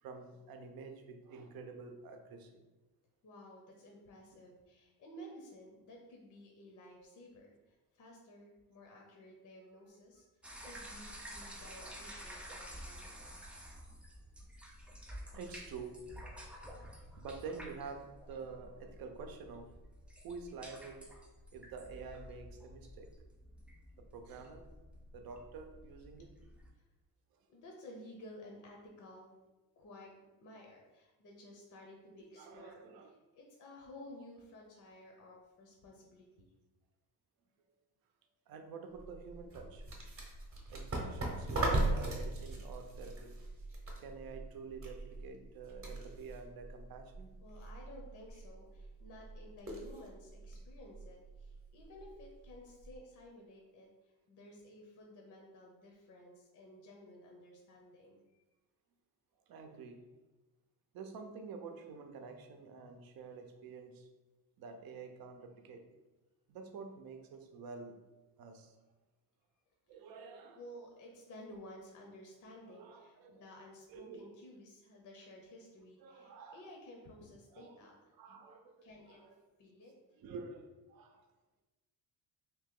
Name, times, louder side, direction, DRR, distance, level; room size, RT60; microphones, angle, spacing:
voice 1, 0.0-2.6 15.1-16.1 17.2-19.7 20.2-21.1 21.5-23.1 24.0-24.7 25.1-26.3 27.3-27.5 32.2-33.1 38.5-39.8 40.7-43.4 44.0-47.3 59.5-60.2 60.9-64.1 64.6-65.9 66.5-68.1 68.4-68.8 69.9-70.6 72.7-73.4 73.9-74.4 76.0-76.7 77.5-77.8 78.2-79.4 80.2-81.2, right 4 dB, 60° right, 5 dB, 0.6 m, -48 dB
voice 2, 3.2-10.2 10.6-13.1 26.7-26.8 27.5-29.3 29.8-36.5 47.4-58.4 70.5-78.0 78.3-78.4 78.8-79.2 79.6-79.9, left 1 dB, 50° left, 0 dB, 0.7 m, -54 dB
sound 1, 10.4-26.7, equal, 5° right, 0.3 m, -51 dB
sound 2, 38.9-53.0, right 2 dB, 35° right, 0.9 m, -40 dB
2.9 x 2.8 x 3.7 m, 1.1 s
cardioid pair, 115°, 39 cm